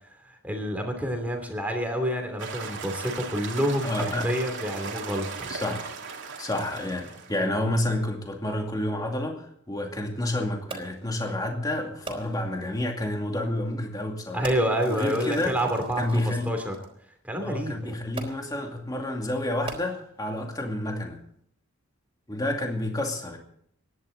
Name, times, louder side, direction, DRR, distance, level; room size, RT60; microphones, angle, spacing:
voice 1, 0.3-5.5 14.3-16.7 17.3-18.0, equal, 5° right, 3 dB, 2.8 m, -28 dB
sound 1, 2.4-7.5, right 5 dB, 60° right, 2.7 m, -37 dB
voice 2, 3.8-4.3 5.5-5.9 6.4-14.5 14.9-15.5 16.0-16.5 17.4-21.2 22.3-23.4, left 1 dB, 20° left, 2 dB, 2.4 m, -29 dB
Fireworks, 10.7-11.1 12.1-12.6 13.4-13.6 14.4-16.9 18.2-18.7 19.5-20.3 21.0-21.1, right 3 dB, 25° right, 3.6 m, -41 dB
25.5 x 11.0 x 4.0 m, 0.68 s
head